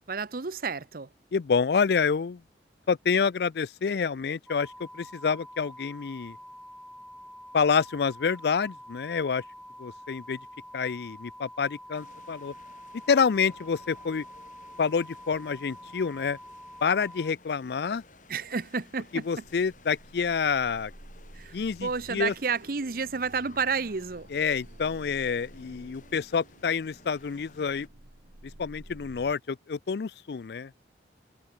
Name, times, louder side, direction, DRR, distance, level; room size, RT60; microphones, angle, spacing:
voice 1, 0.1-1.1 18.3-19.2 21.3-24.3, right 5 dB, 55° right, 0.8 m, -31 dB
voice 2, 1.3-2.4 2.9-6.4 7.5-9.4 9.8-10.4 10.7-12.5 13.1-14.2 14.8-16.4 16.8-18.0 19.1-20.9 21.5-22.3 24.3-27.9 28.6-30.7, left 5 dB, 65° left, 0.4 m, -28 dB
sound 1, 4.5-17.3, equal, ahead, 3.2 m, -47 dB
sound 2, 11.9-27.9, left 3 dB, 45° left, 4.0 m, -56 dB
sound 3, 19.4-29.3, right 1 dB, 90° right, 2.3 m, -51 dB
head